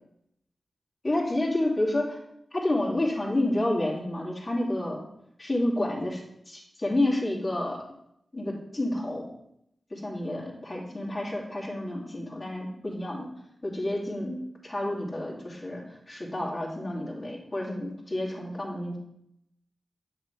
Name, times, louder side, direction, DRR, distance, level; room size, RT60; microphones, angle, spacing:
voice 1, 1.0-2.2 2.5-5.0 5.4-6.2 6.5-7.8 8.3-9.3 9.9-13.3 13.6-19.0, left 1 dB, 40° left, -6 dB, 2.6 m, -29 dB
8.7 x 5.9 x 3.4 m, 0.75 s
cardioid pair, 45°, 0 cm